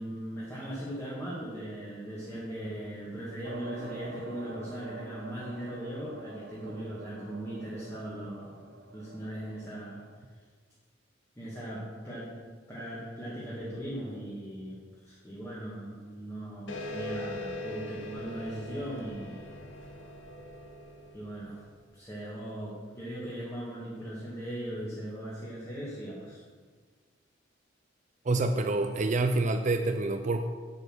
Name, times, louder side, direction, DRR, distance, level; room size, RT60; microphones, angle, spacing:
voice 1, 0.0-8.6 8.9-10.0 11.4-12.3 12.7-14.8 15.0-19.6 21.1-21.6 21.9-26.4, right 1 dB, 15° left, -8 dB, 2.1 m, -39 dB
sound 1, 3.4-10.2, right 2 dB, 75° right, 0.9 m, -47 dB
sound 2, 16.7-21.8, left 1 dB, 90° left, 1.3 m, -41 dB
voice 2, 28.3-30.4, right 2 dB, 40° right, 6 dB, 0.5 m, -27 dB
9.6 x 7.2 x 6.2 m, 1.5 s
head